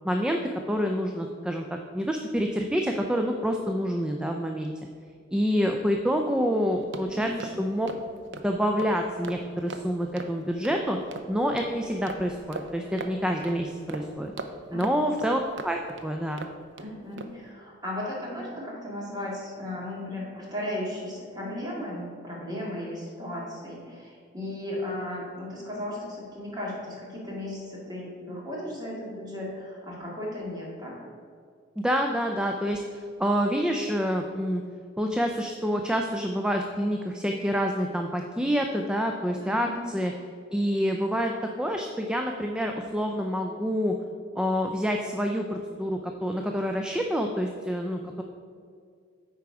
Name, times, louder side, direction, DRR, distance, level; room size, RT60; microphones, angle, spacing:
voice 1, 0.0-0.4 0.7-1.7 1.9-4.7 5.3-7.9 8.4-11.0 11.3-14.3 14.7-16.5 31.8-34.6 35.0-40.1 40.5-41.3 41.6-43.9 44.4-48.2, equal, 5° right, 3 dB, 0.4 m, -27 dB
sound 1, 6.5-16.9 17.2-17.4, right 2 dB, 65° right, 0.6 m, -41 dB
voice 2, 14.7-15.1 16.8-31.1 39.4-39.8, left 1 dB, 20° right, -4 dB, 2.0 m, -36 dB
8.9 x 4.7 x 4.7 m, 2.2 s
head